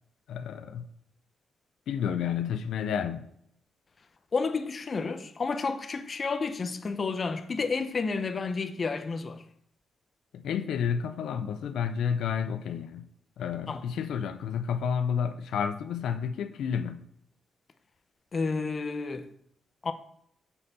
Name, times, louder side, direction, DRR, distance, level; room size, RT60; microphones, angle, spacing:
voice 1, 0.3-0.9 1.9-3.3 10.3-13.1 13.4-17.1, left 7 dB, 90° left, 0.4 m, -30 dB
voice 2, 4.3-9.4 13.7-13.8 18.3-19.3 19.8-19.9, left 4 dB, 40° left, 0.6 m, -31 dB
6.7 x 5.4 x 4.1 m
cardioid pair, 105°, 0 cm